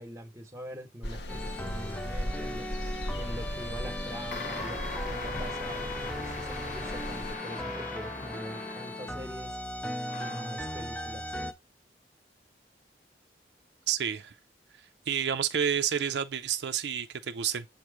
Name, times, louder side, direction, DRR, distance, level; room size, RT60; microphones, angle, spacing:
voice 1, 0.0-2.7 3.1-9.6 10.2-11.3, equal, 15° right, 1.0 m, -43 dB
sound 1, 1.0-7.4, left 1 dB, 65° left, 0.9 m, -38 dB
sound 2, 1.3-11.5, left 1 dB, 10° left, 0.5 m, -38 dB
sound 3, 4.3-9.4 10.1-10.6, left 2 dB, 45° left, 1.2 m, -40 dB
voice 2, 13.9-14.3 15.1-17.6, right 8 dB, 65° right, 0.4 m, -29 dB
7.2 x 3.0 x 4.8 m
head